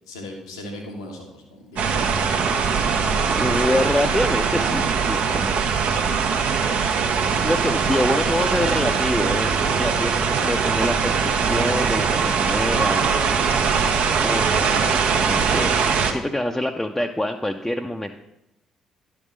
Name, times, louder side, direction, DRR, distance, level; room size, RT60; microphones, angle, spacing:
voice 1, 0.1-2.1 7.6-8.0 13.7-14.0, left 1 dB, 80° left, 1 dB, 1.2 m, -38 dB
sound 1, 1.8-16.1, right 6 dB, 60° right, 0.9 m, -21 dB
voice 2, 3.3-5.5 7.4-13.1 14.2-14.5 14.8-18.2, left 1 dB, 10° left, 3 dB, 0.6 m, -26 dB
11.0 x 3.7 x 6.3 m, 0.87 s
figure-of-eight pair, 45°, 3 cm